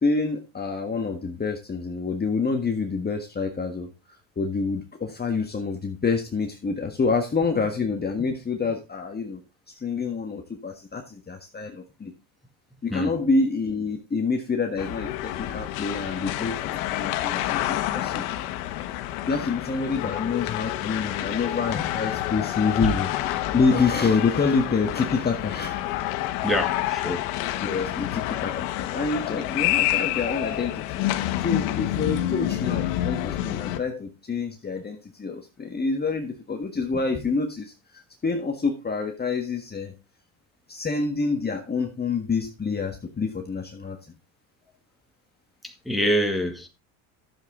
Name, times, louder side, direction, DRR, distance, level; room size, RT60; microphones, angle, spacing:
voice 1, 0.0-3.9 4.4-9.4 9.7-12.1 12.8-18.3 19.3-23.2 23.5-25.8 27.6-30.8 31.4-39.9 40.7-44.0, left 4 dB, 20° left, 1.6 m, -27 dB
sound 1, 14.8-33.8, left 14 dB, 85° left, 1.4 m, -28 dB
voice 2, 26.4-27.2 45.6-46.7, equal, ahead, 2.3 m, -26 dB
12.0 x 7.6 x 3.7 m
supercardioid pair, 100°, 44 cm